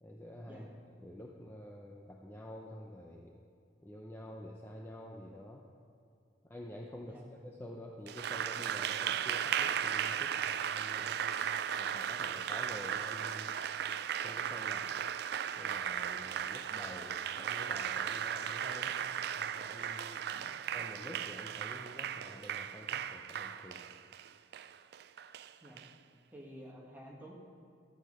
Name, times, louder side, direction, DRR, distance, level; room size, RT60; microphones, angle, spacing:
voice 1, 0.0-0.7 1.0-3.3 3.8-5.6 6.4-13.6 14.2-15.0 15.6-19.0 19.4-20.2 20.7-23.8, left 1 dB, 10° left, -1 dB, 0.6 m, -49 dB
Applause, 8.1-25.9, right 9 dB, 60° right, 0.3 m, -36 dB
voice 2, 26.3-27.3, equal, 10° right, -3 dB, 1.6 m, -51 dB
13.0 x 7.9 x 5.3 m, 2.4 s
head